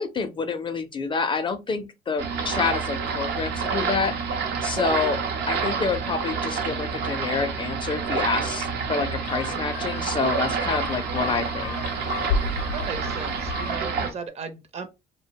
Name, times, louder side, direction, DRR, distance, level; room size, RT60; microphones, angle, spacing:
voice 1, 0.0-5.2 5.5-11.8, left 4 dB, 30° left, 0.4 m, -28 dB
sound 1, 2.2-14.1, right 5 dB, 75° right, 0.7 m, -28 dB
sound 2, 9.3-14.0, left 4 dB, 90° left, 0.5 m, -32 dB
voice 2, 12.7-14.9, right 5 dB, 40° right, 0.6 m, -36 dB
2.4 x 2.1 x 2.8 m
cardioid pair, 110°, 17 cm